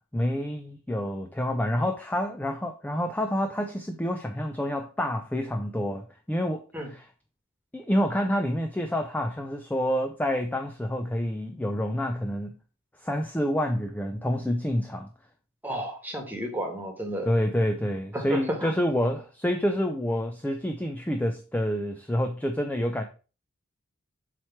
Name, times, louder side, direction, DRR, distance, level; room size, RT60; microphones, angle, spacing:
voice 1, 0.1-7.1 7.7-12.5 13.0-15.1 17.2-23.0, equal, 10° left, 0.4 m, -28 dB
voice 2, 15.6-17.3 18.1-18.7, equal, 10° right, 1.4 m, -32 dB
7.5 x 3.2 x 4.5 m
head